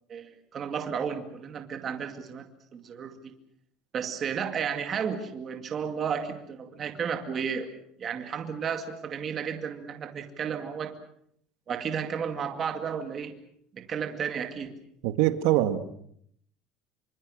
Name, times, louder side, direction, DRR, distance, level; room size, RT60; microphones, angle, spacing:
voice 1, 0.1-2.5 2.7-3.3 3.9-7.7 8.0-11.0 11.7-13.4 13.7-14.8, right 7 dB, 25° right, 6 dB, 2.3 m, -33 dB
voice 2, 15.0-15.8, right 14 dB, 70° right, 9 dB, 2.1 m, -23 dB
27.0 x 25.0 x 6.5 m, 0.67 s
cardioid pair, 180°, 0 cm